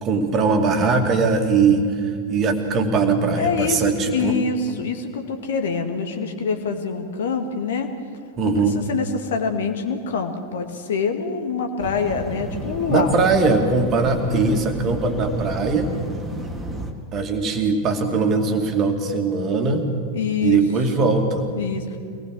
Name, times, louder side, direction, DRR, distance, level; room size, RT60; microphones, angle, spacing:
voice 1, 0.0-1.9 2.3-4.4 8.4-8.8 12.9-15.9 17.1-19.9 20.4-21.5, right 4 dB, 30° right, 4 dB, 2.4 m, -20 dB
voice 2, 3.3-3.8 4.1-7.9 8.4-13.2 20.1-20.6 21.0-21.2 21.6-22.0, left 5 dB, 60° left, 5 dB, 2.1 m, -25 dB
sound 1, 11.8-16.9, equal, 10° right, 2.3 m, -32 dB
25.0 x 19.0 x 6.3 m, 2.2 s
figure-of-eight pair, 90°, 0 cm